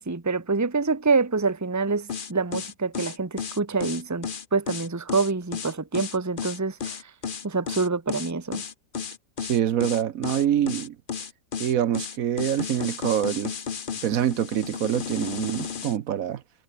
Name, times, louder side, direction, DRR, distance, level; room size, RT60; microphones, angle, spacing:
voice 1, 0.0-7.1 7.4-8.6, right 4 dB, 10° right, 1.2 m, -26 dB
sound 1, 2.1-16.0, left 6 dB, 40° left, 0.9 m, -33 dB
voice 2, 9.4-11.0 11.6-13.6 14.0-16.4, right 10 dB, 65° right, 1.1 m, -25 dB
omnidirectional pair, 1.7 m